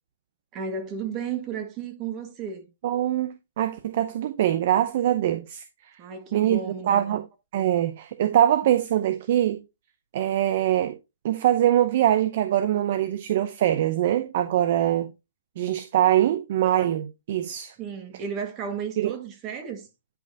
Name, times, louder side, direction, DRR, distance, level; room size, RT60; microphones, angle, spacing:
voice 1, 0.5-2.7 6.0-7.2 17.8-19.9, right 6 dB, 30° right, 1.8 m, -33 dB
voice 2, 2.8-5.6 6.3-6.6 6.9-7.2 7.5-9.6 10.1-11.0 11.2-15.1 15.6-17.7 19.0-19.1, right 12 dB, 50° right, 0.7 m, -23 dB
10.5 x 5.1 x 2.8 m
hypercardioid pair, 135°, 0 cm